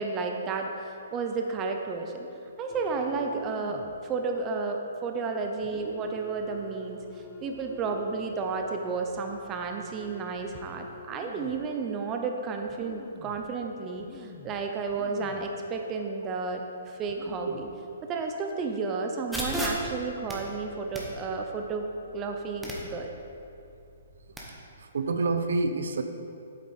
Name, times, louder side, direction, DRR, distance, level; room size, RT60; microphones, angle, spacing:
voice 1, 0.0-2.3 2.6-7.0 7.4-17.7 18.1-23.1, right 4 dB, 20° right, 3 dB, 0.7 m, -32 dB
sound 1, 2.7-4.0 4.4-4.5 5.6-11.7 12.3-12.4 12.7-13.5 14.0-15.6 15.9-16.0 16.7-16.8 17.0-17.8 18.3-18.5, left 4 dB, 25° left, 0.6 m, -48 dB
sound 2, 19.3-24.4, equal, 5° right, 1.0 m, -37 dB
voice 2, 24.5-26.0, right 3 dB, 75° right, 8 dB, 0.6 m, -28 dB
8.5 x 7.6 x 4.3 m, 2.7 s
hypercardioid pair, 160°, 0 cm